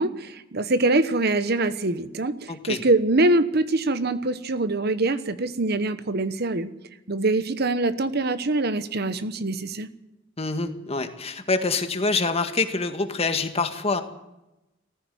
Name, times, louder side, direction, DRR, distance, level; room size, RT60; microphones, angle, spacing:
voice 1, 0.0-6.7 7.1-9.9, right 2 dB, 55° right, 12 dB, 1.1 m, -24 dB
voice 2, 2.5-2.8 10.4-14.0, left 3 dB, 30° left, 7 dB, 1.8 m, -26 dB
19.0 x 15.0 x 9.3 m, 0.94 s
head